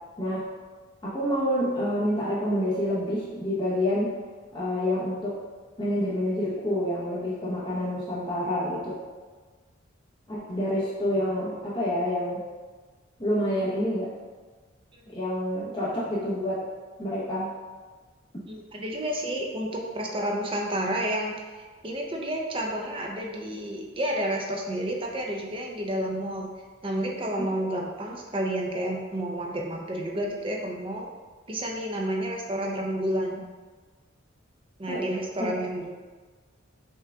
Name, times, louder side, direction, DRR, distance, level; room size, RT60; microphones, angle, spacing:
voice 1, 1.0-4.1 4.5-5.4 5.8-9.0 10.3-12.4 13.2-14.1 15.1-16.6 17.0-17.5 34.9-35.0 35.4-35.5, equal, 25° left, -9 dB, 0.9 m, -28 dB
voice 2, 18.5-26.5 26.8-31.1 31.5-33.4 34.8-35.9, right 1 dB, 25° right, 0 dB, 0.5 m, -30 dB
5.5 x 2.4 x 3.5 m, 1.4 s
head